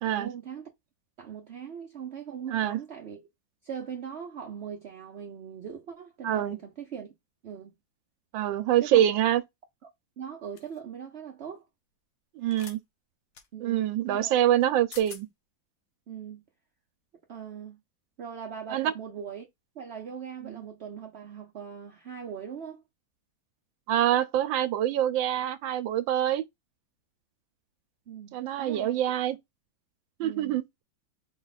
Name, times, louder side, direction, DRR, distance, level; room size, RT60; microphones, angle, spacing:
voice 1, 0.0-0.7 1.2-3.3 3.6-7.1 7.4-7.7 8.8-9.1 10.2-11.6 13.5-14.3 14.6-14.7 16.1-16.4 17.3-17.8 18.2-19.5 19.7-22.8 28.1-29.0 30.2-30.6, right 7 dB, 55° right, 0.7 m, -40 dB
voice 2, 6.2-6.6 8.3-9.4 12.3-12.8 13.6-15.3 18.7-18.9 20.4-20.6 23.9-26.4 28.3-29.4 30.2-30.8, right 11 dB, 80° right, 1.3 m, -25 dB
sound 1, 10.6-10.8 12.5-12.8 13.3-13.5 14.6-14.7 14.9-15.2, left 7 dB, 70° left, 1.6 m, -45 dB
5.1 x 2.3 x 4.0 m
omnidirectional pair, 2.1 m